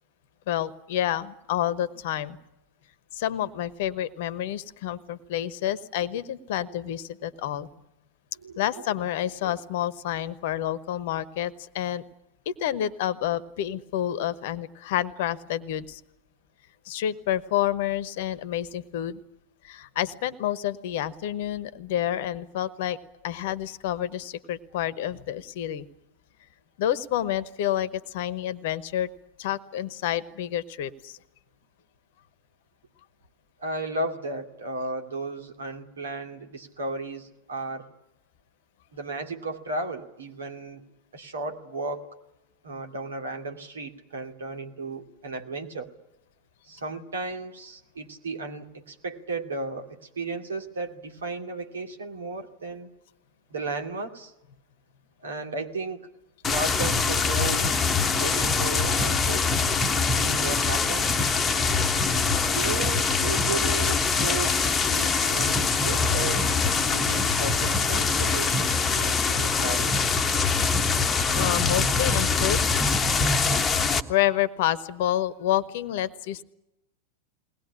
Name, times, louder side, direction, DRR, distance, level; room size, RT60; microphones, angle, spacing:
voice 1, 0.5-2.4 3.1-7.7 8.6-12.0 12.4-16.0 16.8-19.2 19.6-23.0 23.2-25.8 26.8-29.1 29.4-31.2 71.4-72.6 74.1-76.4, left 12 dB, 50° left, 17 dB, 1.1 m, -29 dB
voice 2, 33.6-37.9 38.9-40.8 41.1-42.1 42.6-45.9 46.7-52.9 53.5-54.3 55.2-56.1 56.5-59.5 60.1-61.3 62.5-66.5 66.9-69.9, right 3 dB, 65° right, 4 dB, 2.5 m, -34 dB
sound 1, 56.4-74.0, left 4 dB, 20° left, 1.2 m, -24 dB
21.5 x 19.0 x 9.9 m, 0.90 s
figure-of-eight pair, 90°, 0 cm